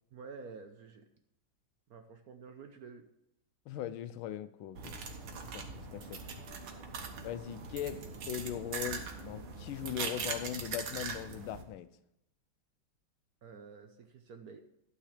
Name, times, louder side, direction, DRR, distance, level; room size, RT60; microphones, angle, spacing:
voice 1, 0.1-1.0 1.9-3.1 5.3-5.4 13.4-14.6, right 5 dB, 60° right, 6 dB, 1.0 m, -50 dB
voice 2, 3.7-5.0 5.5-5.6 5.9-6.2 7.2-11.9, left 11 dB, 90° left, 13 dB, 1.4 m, -39 dB
sound 1, 4.8-11.6, right 5 dB, 85° right, 2.0 m, -41 dB
12.0 x 4.9 x 6.5 m, 0.82 s
omnidirectional pair, 2.2 m